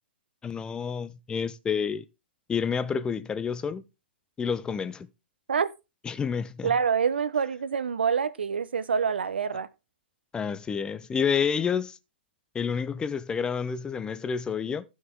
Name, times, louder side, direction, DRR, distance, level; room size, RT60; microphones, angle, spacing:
voice 1, 0.4-2.0 2.5-3.8 4.4-5.1 6.1-6.7 10.3-12.0 12.5-14.8, left 6 dB, 15° left, 0.6 m, -29 dB
voice 2, 6.6-9.7, right 6 dB, 70° right, 0.8 m, -26 dB
14.0 x 6.3 x 3.8 m
figure-of-eight pair, 110°, 6 cm